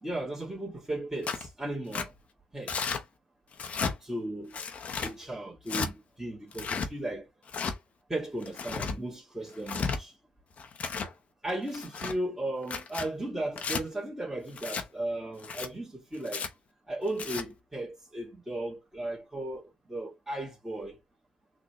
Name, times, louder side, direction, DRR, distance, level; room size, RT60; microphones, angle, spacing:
voice 1, 0.0-2.1 2.5-2.9 4.0-4.6 5.0-7.3 8.1-10.1 11.4-16.4 16.9-21.0, right 1 dB, 10° right, 1.8 m, -36 dB
Tearing, 1.2-1.5 1.9-2.1 2.7-3.0 3.5-3.9 4.5-5.1 5.7-5.9 6.5-6.9 7.5-7.7 8.4-8.9 9.5-10.0 10.6-11.1 11.7-12.1 12.6-13.1 13.6-13.8 14.6-14.8 15.4-15.7 16.2-16.5 17.1-17.4, left 5 dB, 50° left, 0.8 m, -33 dB
3.9 x 2.7 x 3.1 m
hypercardioid pair, 50°, 3 cm